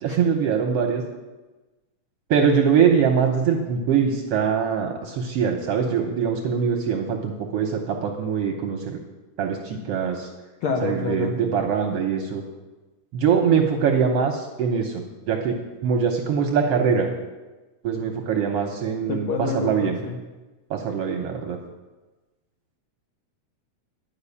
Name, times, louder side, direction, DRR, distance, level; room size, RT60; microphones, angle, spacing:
voice 1, 0.0-1.0 2.3-9.0 9.4-10.3 10.8-12.4 13.1-15.6 15.8-17.1 17.8-20.0 20.7-21.6, right 6 dB, 70° right, 3 dB, 1.5 m, -23 dB
voice 2, 10.6-11.4 19.1-20.2, left 3 dB, 85° left, 3 dB, 1.1 m, -27 dB
11.5 x 5.6 x 8.3 m, 1.2 s
omnidirectional pair, 3.6 m